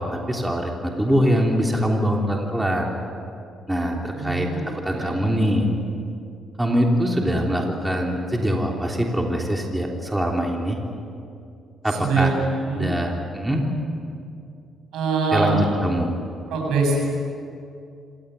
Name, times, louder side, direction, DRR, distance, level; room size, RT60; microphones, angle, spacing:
voice 1, 0.0-2.9 3.7-5.7 6.6-10.8 11.8-12.3 12.8-13.6 15.3-16.1, equal, 10° right, 0 dB, 3.4 m, -23 dB
voice 2, 4.1-4.7 4.9-5.2 12.0-12.3 12.6-12.9 14.9-15.6 16.5-17.0, right 4 dB, 85° right, 0 dB, 7.4 m, -23 dB
26.5 x 17.0 x 9.4 m, 2.5 s
cardioid pair, 90°, 0 cm